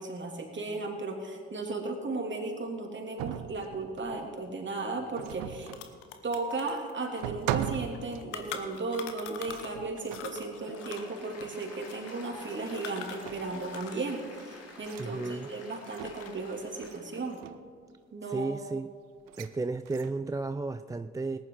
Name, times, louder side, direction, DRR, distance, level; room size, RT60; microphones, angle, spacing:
voice 1, 0.0-5.7 6.2-17.4 18.1-18.7, right 3 dB, 30° right, 1 dB, 2.8 m, -35 dB
sound 1, 3.2-4.3 5.1-5.9 6.7-6.8 7.2-8.6 9.5-10.4 11.4-11.6 12.3-12.7 13.0-13.6 14.8-15.1 15.7-16.4 16.8-17.0 17.2-17.7 19.3-19.5 19.9-20.3, right 11 dB, 65° right, 0.8 m, -39 dB
sound 2, 5.1-5.2 5.4-9.8 10.1-14.1 14.4-15.5 15.9-16.5, left 9 dB, 80° left, 1.0 m, -44 dB
Applause, 10.4-17.2, left 2 dB, 45° left, 3.0 m, -49 dB
voice 2, 15.0-15.5 18.3-18.9 19.4-21.4, right 3 dB, 10° right, 11 dB, 0.4 m, -33 dB
19.5 x 10.5 x 3.9 m, 2.1 s
hypercardioid pair, 45°, 35 cm